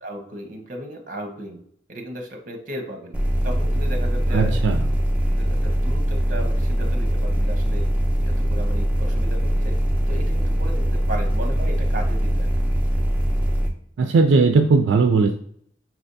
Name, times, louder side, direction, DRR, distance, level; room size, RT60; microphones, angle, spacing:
voice 1, 0.0-1.6 1.9-3.1 3.4-4.6 5.4-7.8 8.3-9.8 10.1-12.5, equal, 45° right, 3 dB, 0.9 m, -35 dB
sound 1, 3.1-13.7, equal, 5° right, 0.5 m, -22 dB
voice 2, 4.3-4.8 14.0-15.4, right 4 dB, 75° right, 6 dB, 0.3 m, -18 dB
5.8 x 3.3 x 2.6 m, 0.66 s
head